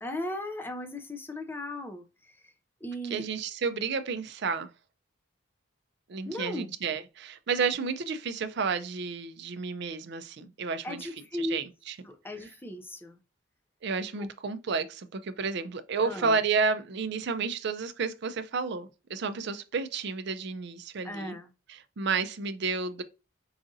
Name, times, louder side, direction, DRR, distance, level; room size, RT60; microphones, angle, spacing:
voice 1, 0.0-2.4 2.8-3.2 6.3-6.7 10.8-11.6 12.0-13.2 14.2-14.3 16.0-16.4 21.0-21.5, left 1 dB, 10° left, 0.5 m, -36 dB
voice 2, 3.1-4.7 6.1-11.1 11.4-12.0 13.8-21.3 21.7-23.0, right 5 dB, 55° right, 0.4 m, -31 dB
4.8 x 2.5 x 2.6 m
head